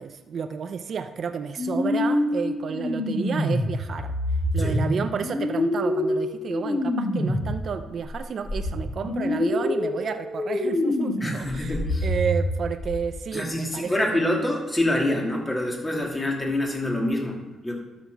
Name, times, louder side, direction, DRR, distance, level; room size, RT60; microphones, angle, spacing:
voice 1, 0.0-4.1 4.5-14.2, right 6 dB, 55° right, 8 dB, 0.6 m, -31 dB
sound 1, 1.6-7.6 8.0-12.9, left 1 dB, 40° left, 3.5 m, -26 dB
voice 2, 11.2-12.1 13.3-17.7, left 1 dB, 15° left, -1 dB, 2.5 m, -26 dB
12.5 x 6.0 x 4.8 m, 1.0 s
cardioid pair, 90°, 0 cm